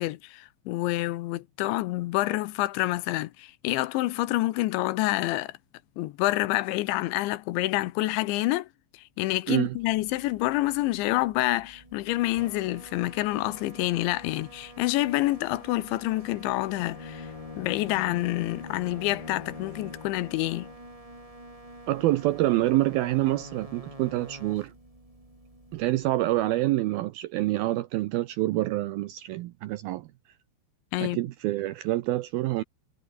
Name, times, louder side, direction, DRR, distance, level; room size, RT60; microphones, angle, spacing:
voice 1, 0.0-5.5 6.0-8.7 9.2-17.3 17.6-20.7 30.9-31.2, left 18 dB, 90° left, 3.3 m, -27 dB
sound 1, 9.4-26.7, right 1 dB, 10° right, 3.8 m, -48 dB
Bowed string instrument, 16.7-20.9, left 5 dB, 50° left, 6.4 m, -44 dB
voice 2, 21.9-24.7 25.7-30.1 31.0-32.6, right 16 dB, 80° right, 2.2 m, -26 dB
omnidirectional pair, 5.2 m